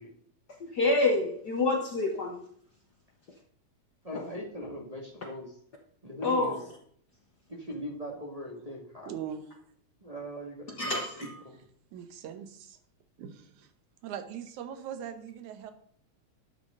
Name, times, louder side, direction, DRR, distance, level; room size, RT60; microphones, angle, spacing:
voice 1, 0.6-2.4 4.1-4.2 6.2-6.6 10.8-11.4, left 2 dB, 75° left, 2 dB, 0.9 m, -27 dB
voice 2, 4.0-5.5 6.0-6.6 7.5-9.1 10.0-10.9 11.4-11.6, equal, 15° right, -2 dB, 1.4 m, -40 dB
voice 3, 9.1-9.4 11.9-12.8 13.2-13.7 14.0-15.7, right 9 dB, 85° right, 9 dB, 2.5 m, -40 dB
11.5 x 8.2 x 3.8 m, 0.62 s
omnidirectional pair, 3.3 m